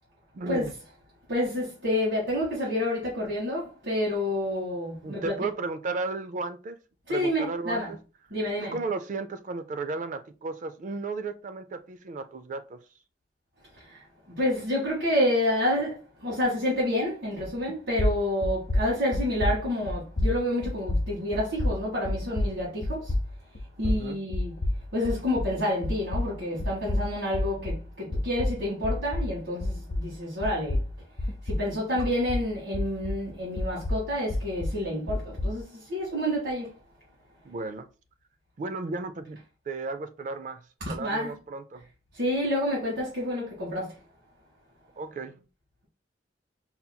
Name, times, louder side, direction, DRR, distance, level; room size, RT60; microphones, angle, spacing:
voice 1, 0.3-0.7 5.0-6.8 7.1-8.0 8.6-12.8 23.8-24.2 37.4-37.9 38.6-40.6 40.9-41.8 45.0-45.4, right 3 dB, 45° right, 0.3 m, -34 dB
voice 2, 1.3-5.3 7.1-7.9 8.3-8.7 14.4-15.9 16.2-23.0 23.8-24.5 24.9-29.7 30.0-30.8 31.6-35.6 35.9-36.6 40.9-41.3 42.2-43.8, left 1 dB, 85° right, 1.7 m, -28 dB
sound 1, 17.4-17.7 18.0-25.6 25.8-30.2 30.4-33.3 33.6-35.6, left 1 dB, 55° left, 0.6 m, -29 dB
5.5 x 2.8 x 2.2 m
head